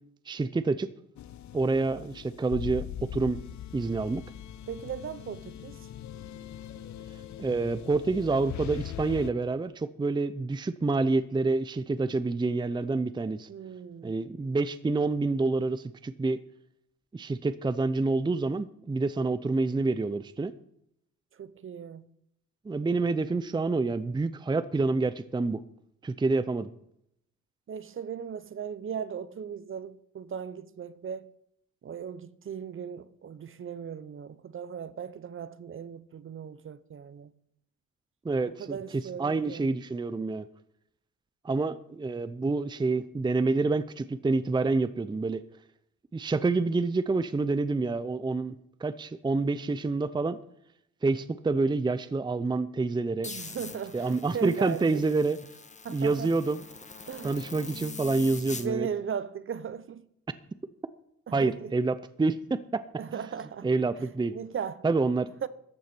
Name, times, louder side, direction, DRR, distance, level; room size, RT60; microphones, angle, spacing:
voice 1, 0.3-0.9 1.5-2.9 3.1-3.4 3.7-4.2 7.4-13.5 14.0-16.4 17.1-20.5 22.7-25.6 26.0-26.7 38.2-38.8 39.2-40.5 41.4-45.4 46.1-48.6 48.8-50.4 51.0-53.3 53.9-55.4 55.9-56.6 57.2-58.9 61.3-62.8 63.6-64.4 64.8-65.3, right 3 dB, 15° right, 0.6 m, -27 dB
sound 1, 1.2-9.3, left 11 dB, 70° left, 0.9 m, -41 dB
voice 2, 4.7-5.8 13.5-14.1 21.4-22.0 27.7-31.3 31.8-37.3 38.6-39.7 53.2-55.0 55.8-56.4 57.1-57.3 58.5-60.0 61.3-61.7 63.0-63.7 64.0-64.8 65.4-65.5, right 7 dB, 45° right, 0.9 m, -37 dB
sound 2, 53.2-58.7, left 4 dB, 25° left, 1.4 m, -43 dB
14.0 x 8.3 x 6.1 m
cardioid pair, 90°, 30 cm